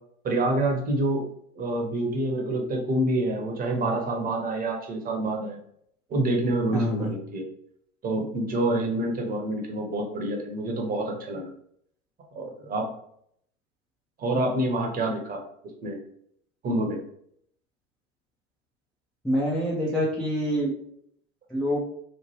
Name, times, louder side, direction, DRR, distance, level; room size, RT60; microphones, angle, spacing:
voice 1, 0.2-1.2 1.6-5.6 6.1-7.5 8.0-11.5 12.3-12.9 14.2-15.4 15.8-16.0 16.6-17.0, right 1 dB, 25° right, 2 dB, 0.7 m, -27 dB
voice 2, 6.7-7.1 19.2-20.7 21.5-21.8, equal, ahead, -5 dB, 0.4 m, -26 dB
3.0 x 2.1 x 3.0 m, 0.68 s
figure-of-eight pair, 85°, 37 cm